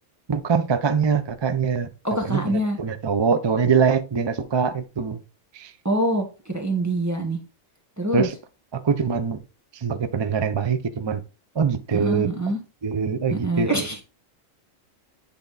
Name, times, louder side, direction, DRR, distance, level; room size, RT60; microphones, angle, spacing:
voice 1, 0.3-1.9 2.2-5.2 5.5-5.7 8.1-8.3 8.8-9.4 9.7-11.2 11.6-12.3 12.8-14.0, right 6 dB, 45° right, 0.3 m, -23 dB
voice 2, 2.0-2.8 5.8-7.4 8.0-8.3 11.9-12.6 13.3-14.0, right 1 dB, 15° right, 1.0 m, -25 dB
8.6 x 3.5 x 3.9 m
omnidirectional pair, 1.3 m